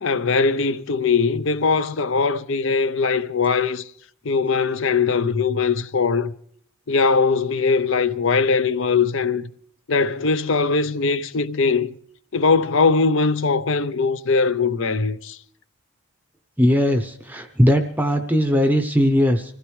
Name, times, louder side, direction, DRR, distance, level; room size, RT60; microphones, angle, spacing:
voice 1, 0.0-3.8 4.2-6.3 6.9-9.5 9.9-11.9 12.3-15.4, left 4 dB, 55° left, 0.6 m, -20 dB
voice 2, 16.6-19.6, equal, 10° right, 0.7 m, -19 dB
25.0 x 15.5 x 3.2 m
head